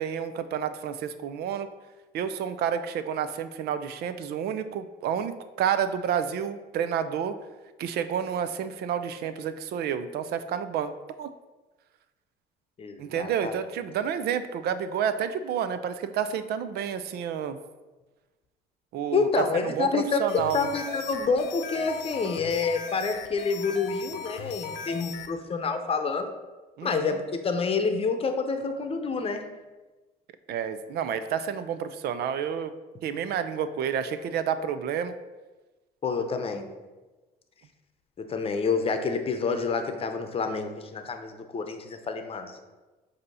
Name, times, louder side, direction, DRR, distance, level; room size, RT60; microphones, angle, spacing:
voice 1, 0.0-1.7 2.1-7.3 7.8-10.9 11.2-11.3 13.0-17.6 18.9-20.7 26.8-27.2 30.5-32.7 33.0-35.1, right 8 dB, 70° right, 11 dB, 0.5 m, -30 dB
voice 2, 12.8-13.5 19.1-26.3 26.8-29.4 36.0-36.7 38.2-42.6, left 4 dB, 35° left, 6 dB, 0.8 m, -28 dB
sound 1, 20.3-25.3, left 6 dB, 90° left, 0.6 m, -39 dB
7.9 x 2.8 x 5.5 m, 1.2 s
cardioid pair, 110°, 17 cm